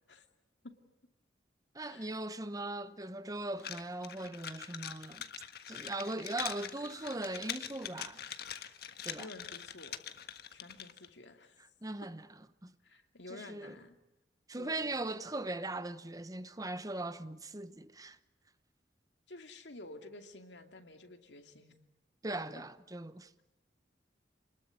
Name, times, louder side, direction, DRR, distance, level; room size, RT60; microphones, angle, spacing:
voice 1, 1.7-5.3 5.7-8.2 9.0-9.3 11.8-12.7 13.3-13.8 14.5-18.2 22.2-23.4, right 2 dB, 20° right, 0.9 m, -39 dB
sound 1, 3.6-11.1, left 9 dB, 60° left, 1.5 m, -44 dB
voice 2, 9.1-10.0 10.5-11.6 12.8-14.0 14.5-14.9 19.3-21.8, left 2 dB, 75° left, 2.5 m, -51 dB
29.5 x 21.0 x 9.6 m
head